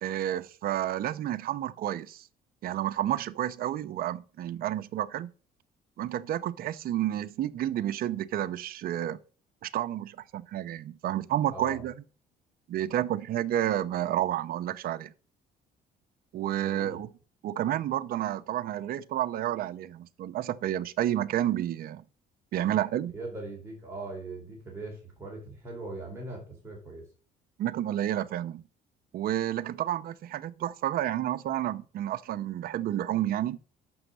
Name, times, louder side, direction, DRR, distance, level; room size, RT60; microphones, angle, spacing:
voice 1, 0.0-2.3 2.6-5.3 6.0-9.2 9.6-11.9 12.7-15.1 16.3-17.1 17.4-22.0 22.5-23.1 27.6-28.6 29.1-33.6, right 12 dB, 60° right, 0.7 m, -30 dB
voice 2, 11.5-11.8 16.6-17.0 23.1-27.1, right 2 dB, 15° right, 4.6 m, -40 dB
7.6 x 6.3 x 6.8 m
cardioid pair, 110°, 17 cm